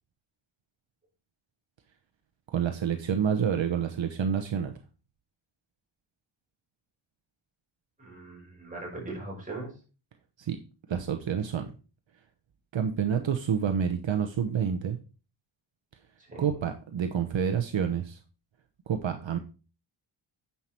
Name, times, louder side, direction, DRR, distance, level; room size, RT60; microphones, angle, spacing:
voice 1, 2.5-4.8 10.4-10.6 10.9-11.7 12.7-15.0 16.4-18.2 18.9-19.4, right 7 dB, 65° right, 6 dB, 1.0 m, -28 dB
voice 2, 8.0-9.7 16.2-16.5, right 2 dB, 15° right, -3 dB, 5.3 m, -40 dB
9.5 x 5.7 x 4.4 m, 0.34 s
wide cardioid pair, 135°, 49 cm